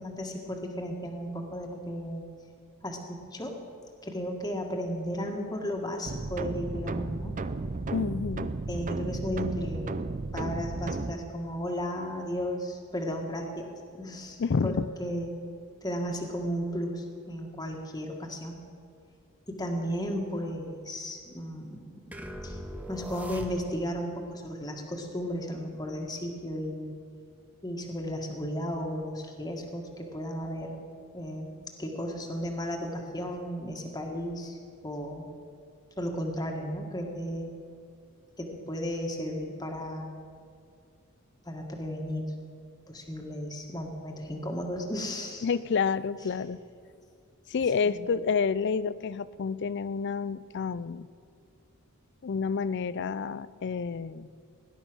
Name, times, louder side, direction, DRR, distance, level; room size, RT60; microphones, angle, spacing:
voice 1, 0.0-2.2 2.8-3.6 4.0-7.4 8.7-10.0 10.3-13.7 13.9-15.3 15.8-18.6 19.5-22.2 22.4-22.6 22.9-26.9 27.6-30.8 31.1-34.6 34.8-35.2 36.0-37.5 38.4-40.1 41.5-42.3 42.9-45.5 47.8-48.0, equal, 20° left, 1 dB, 1.7 m, -34 dB
sound 1, 6.1-11.1, right 3 dB, 35° right, 0.5 m, -34 dB
voice 2, 7.9-8.5 14.4-14.9 45.4-46.6 47.5-51.1 52.2-54.3, left 5 dB, 55° left, 17 dB, 0.4 m, -29 dB
sound 2, 22.1-24.0, equal, 5° right, 0.8 m, -40 dB
18.0 x 11.0 x 6.2 m, 2.3 s
head